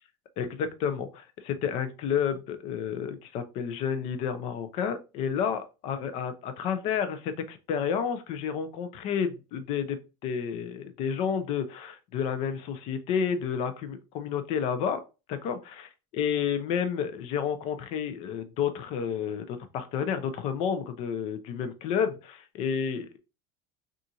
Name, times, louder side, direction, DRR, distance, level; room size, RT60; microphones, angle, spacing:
voice 1, 0.4-15.0 15.3-15.6 16.1-23.2, left 7 dB, 40° left, 10 dB, 0.4 m, -30 dB
3.8 x 2.4 x 2.7 m, 0.30 s
cardioid pair, 180°, 16 cm